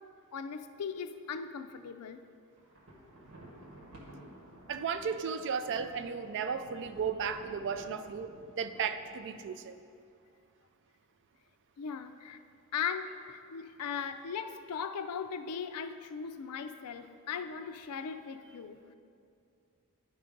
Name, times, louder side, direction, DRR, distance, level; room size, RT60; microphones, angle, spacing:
voice 1, 0.3-2.2 11.8-12.4 12.7-19.0, left 6 dB, 85° left, 10 dB, 0.4 m, -38 dB
Thunder, 2.6-9.8, right 1 dB, 75° right, 1.3 m, -54 dB
voice 2, 4.7-8.3 8.5-9.8, right 6 dB, 55° right, 10 dB, 0.4 m, -34 dB
10.0 x 3.9 x 5.1 m, 2.4 s
head